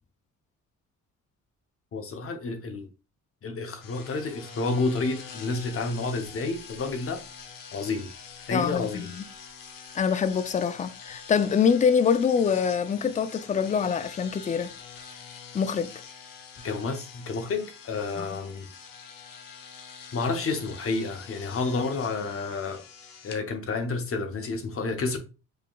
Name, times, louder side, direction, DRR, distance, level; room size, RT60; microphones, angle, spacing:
voice 1, 1.9-2.9 3.4-7.2 7.7-8.1 8.5-9.1 16.6-18.7 20.1-22.8 23.2-25.2, left 3 dB, 45° left, 0.8 m, -30 dB
sound 1, 3.8-23.4, left 6 dB, 80° left, 0.9 m, -45 dB
voice 2, 8.5-9.2 9.9-14.7 15.5-15.9 18.2-18.3, left 6 dB, 25° left, 0.3 m, -25 dB
4.9 x 2.9 x 2.3 m
cardioid pair, 85°, 33 cm